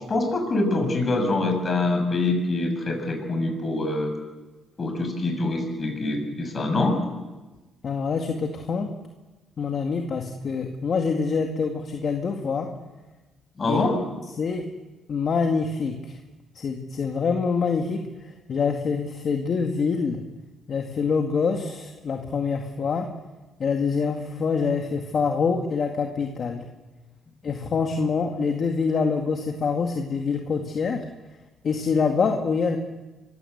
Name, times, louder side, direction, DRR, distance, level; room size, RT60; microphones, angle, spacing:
voice 1, 0.1-4.1 4.8-7.0 13.6-14.0, left 2 dB, 35° left, 4 dB, 6.7 m, -24 dB
voice 2, 7.8-8.9 9.6-12.7 13.7-13.8 14.4-14.6 15.1-16.2 16.6-18.0 18.5-20.2 20.7-23.1 23.6-26.6 27.4-31.0 31.6-32.8, left 5 dB, 50° left, 3 dB, 2.1 m, -25 dB
24.5 x 15.5 x 8.1 m, 1.2 s
cardioid pair, 90°, 0 cm